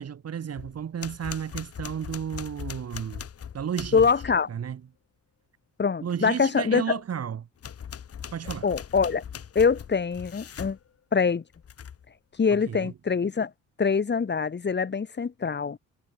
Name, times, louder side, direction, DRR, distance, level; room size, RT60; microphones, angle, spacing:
voice 1, 0.0-3.3 3.5-4.1 4.5-4.8 6.0-7.5 8.3-8.7 12.7-12.9, right 8 dB, 55° right, 6.4 m, -32 dB
sound 1, 0.6-4.5 7.6-10.8 11.5-12.1, left 8 dB, 50° left, 3.2 m, -40 dB
voice 2, 3.9-4.5 5.8-7.0 8.6-9.2 9.6-10.8 11.1-11.4 12.4-13.5 13.8-15.8, left 5 dB, 35° left, 3.7 m, -24 dB
cardioid pair, 90°, 30 cm